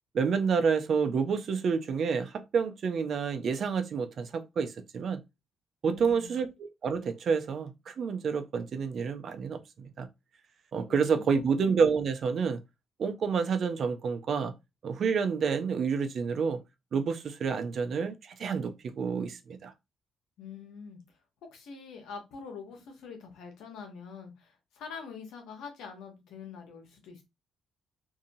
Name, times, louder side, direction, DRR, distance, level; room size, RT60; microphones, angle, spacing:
voice 1, 0.1-5.2 5.8-9.6 10.0-10.1 10.7-12.6 13.0-14.5 14.8-16.6 16.9-19.7, right 6 dB, 55° right, 0.5 m, -29 dB
voice 2, 5.8-6.4 10.8-11.5 20.4-21.0 21.5-27.2, left 5 dB, 85° left, 1.0 m, -45 dB
2.7 x 2.7 x 2.6 m
cardioid pair, 90°, 0 cm